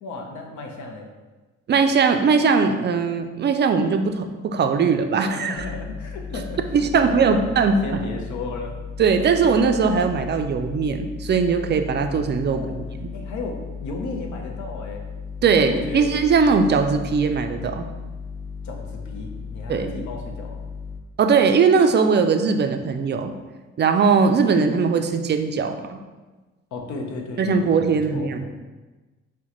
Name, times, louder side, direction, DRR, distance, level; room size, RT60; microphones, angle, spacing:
voice 1, 0.0-1.1 5.3-6.6 6.9-7.4 7.8-8.7 12.5-12.8 13.1-15.0 15.6-16.1 18.6-20.6 26.7-28.5, left 3 dB, 70° left, 2 dB, 0.8 m, -34 dB
voice 2, 1.7-5.6 6.7-7.7 9.0-12.6 13.0-13.1 15.4-17.9 19.7-19.9 21.2-23.3 23.8-26.0 27.4-28.5, right 5 dB, 35° right, 7 dB, 0.4 m, -20 dB
sound 1, 5.5-21.0, left 5 dB, 35° left, 0.5 m, -35 dB
6.2 x 2.2 x 3.0 m, 1.2 s
cardioid pair, 90°, 30 cm